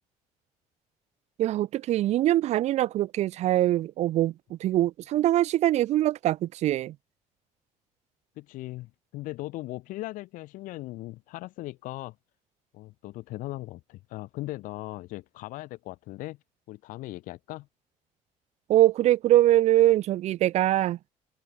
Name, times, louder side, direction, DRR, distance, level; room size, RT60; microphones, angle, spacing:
voice 1, 1.4-6.9 18.7-21.0, right 14 dB, 55° right, 0.5 m, -23 dB
voice 2, 8.4-12.1 12.7-16.4 16.7-17.7, left 18 dB, 80° left, 1.3 m, -38 dB
open air
cardioid pair, 140°, 14 cm